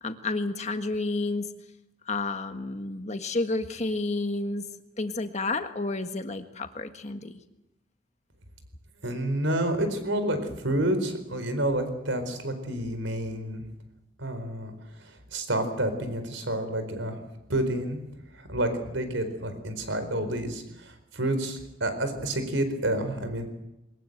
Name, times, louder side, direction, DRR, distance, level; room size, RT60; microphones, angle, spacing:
voice 1, 0.0-1.5 2.1-4.7 5.0-7.4, left 2 dB, 35° left, 7 dB, 1.6 m, -30 dB
voice 2, 9.0-13.6 14.2-14.7 15.0-17.2 17.5-18.0 18.3-23.5, right 1 dB, 80° right, 9 dB, 4.4 m, -29 dB
22.5 x 20.5 x 8.1 m, 0.93 s
head